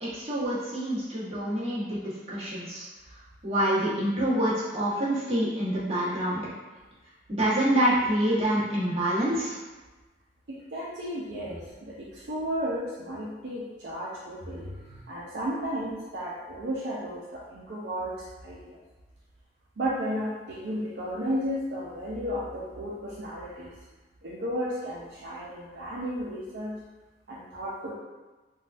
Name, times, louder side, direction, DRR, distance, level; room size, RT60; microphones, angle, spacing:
voice 1, 0.0-2.8 3.4-6.4 7.3-9.6, right 1 dB, 35° right, -10 dB, 1.2 m, -26 dB
voice 2, 10.5-18.8 19.8-23.7 24.2-26.7 27.3-27.9, equal, 70° right, -7 dB, 0.5 m, -33 dB
3.8 x 2.3 x 2.5 m, 1.2 s
head